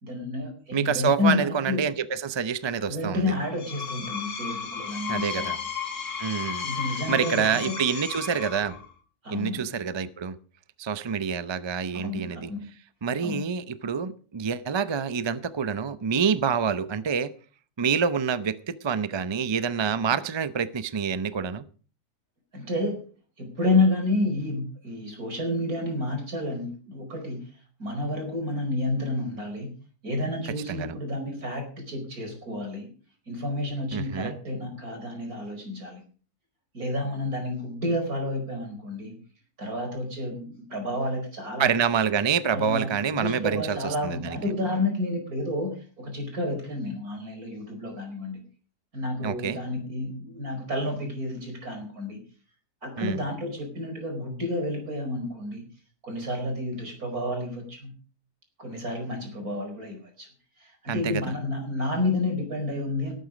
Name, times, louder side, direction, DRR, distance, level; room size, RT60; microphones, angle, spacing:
voice 1, 0.0-1.9 2.9-5.5 6.6-7.7 9.2-9.7 12.0-12.6 13.2-13.4 22.5-23.0 23.4-27.5 27.8-29.7 30.0-32.9 33.3-36.0 36.7-39.2 39.6-41.7 42.5-48.4 48.9-52.2 52.8-55.6 56.0-57.9 58.6-60.3 60.6-63.1, left 2 dB, 70° right, 4 dB, 5.2 m, -30 dB
voice 2, 0.7-3.2 5.1-5.6 6.2-6.7 7.1-8.7 9.3-10.4 10.8-12.5 13.0-17.3 17.8-21.7 30.7-31.0 33.9-34.4 41.6-44.4 49.2-49.6 53.0-53.2 60.9-61.3, right 6 dB, 40° right, 14 dB, 0.4 m, -27 dB
Screech, 3.5-8.9, left 6 dB, 90° left, 2.2 m, -34 dB
18.5 x 9.2 x 5.1 m, 0.40 s
omnidirectional pair, 1.6 m